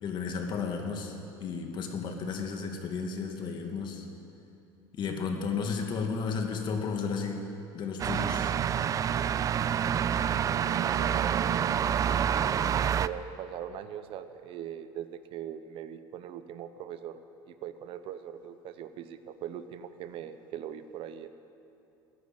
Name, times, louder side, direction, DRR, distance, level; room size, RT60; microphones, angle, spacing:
voice 1, 0.0-4.0 4.9-7.4 7.7-8.5, left 5 dB, 45° left, 3 dB, 2.3 m, -33 dB
sound 1, 8.0-13.1, right 8 dB, 35° right, 0.4 m, -27 dB
voice 2, 10.6-11.7 12.8-17.2 17.5-21.3, right 9 dB, 60° right, 11 dB, 0.8 m, -41 dB
16.0 x 9.4 x 9.0 m, 2.7 s
supercardioid pair, 105°, 10 cm